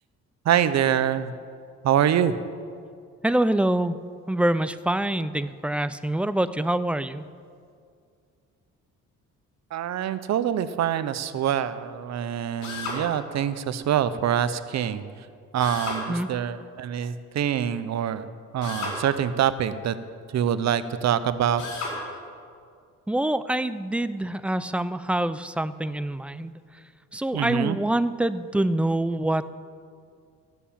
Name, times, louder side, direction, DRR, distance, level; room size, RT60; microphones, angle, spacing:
voice 1, 0.4-1.3 1.8-2.4 9.7-15.0 15.5-18.3 18.5-20.0 20.3-21.6 27.3-27.8, right 9 dB, 60° right, 13 dB, 0.8 m, -25 dB
voice 2, 3.2-4.0 4.3-7.2 16.1-16.3 23.1-26.6 27.1-29.5, right 1 dB, 5° right, 13 dB, 0.4 m, -25 dB
Drill, 12.6-13.0 15.6-16.0 18.6-19.0 21.6-22.0, left 3 dB, 85° left, 4.2 m, -32 dB
13.5 x 7.0 x 8.7 m, 2.3 s
cardioid pair, 90°, 30 cm